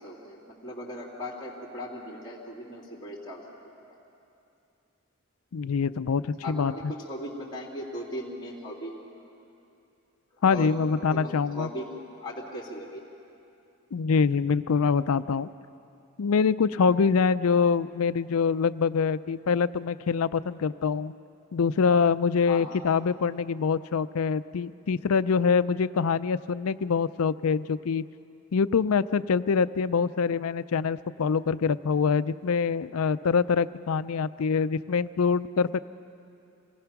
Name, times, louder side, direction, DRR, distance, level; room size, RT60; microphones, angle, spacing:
voice 1, 0.0-3.4 6.4-8.9 10.4-10.8 11.1-11.8 12.2-13.0 22.5-22.8, equal, 20° left, -4 dB, 3.1 m, -38 dB
voice 2, 5.5-6.9 10.4-11.7 13.9-15.5 16.2-21.1 21.5-28.0 28.5-35.8, left 5 dB, 85° left, 15 dB, 0.5 m, -25 dB
26.5 x 18.5 x 5.9 m, 2.7 s
head